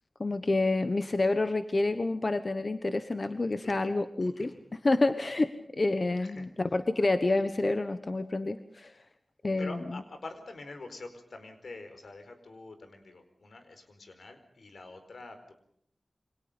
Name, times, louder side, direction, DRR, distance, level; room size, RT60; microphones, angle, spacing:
voice 1, 0.2-8.9 9.4-9.8, left 2 dB, 45° left, 9 dB, 1.3 m, -28 dB
voice 2, 3.6-3.9 4.2-4.6 6.2-6.5 8.9-9.0 9.6-15.5, left 3 dB, 85° left, 8 dB, 4.7 m, -46 dB
28.0 x 25.0 x 5.3 m, 0.65 s
wide cardioid pair, 95°, 0 cm